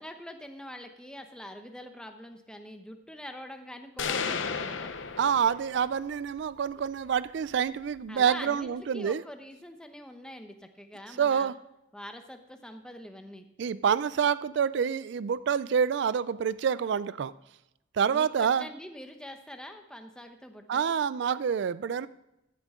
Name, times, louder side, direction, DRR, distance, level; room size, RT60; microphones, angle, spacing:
voice 1, 0.0-4.9 8.1-11.5 11.9-13.4 18.1-20.9, equal, 5° left, 5 dB, 0.8 m, -44 dB
sound 1, 4.0-5.9, left 5 dB, 80° left, 0.8 m, -33 dB
voice 2, 5.2-9.2 11.2-11.5 13.6-17.3 17.9-18.7 20.7-22.1, right 7 dB, 65° right, 17 dB, 0.3 m, -27 dB
14.5 x 9.9 x 3.7 m, 0.90 s
head